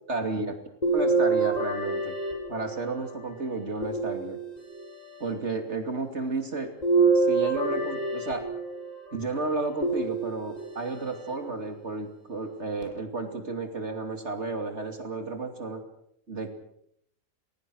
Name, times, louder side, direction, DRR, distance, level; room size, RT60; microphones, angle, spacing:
voice 1, 0.1-0.6 0.9-2.2 2.5-4.4 5.2-6.7 7.1-8.5 9.1-15.8 16.3-16.5, right 3 dB, 60° right, 5 dB, 3.0 m, -32 dB
sound 1, 0.8-3.1 3.8-4.8 6.8-8.9 9.8-10.7 11.3-11.4 12.8-12.9, right 3 dB, 30° left, 7.9 m, -26 dB
30.0 x 21.0 x 6.3 m, 0.74 s
omnidirectional pair, 1.3 m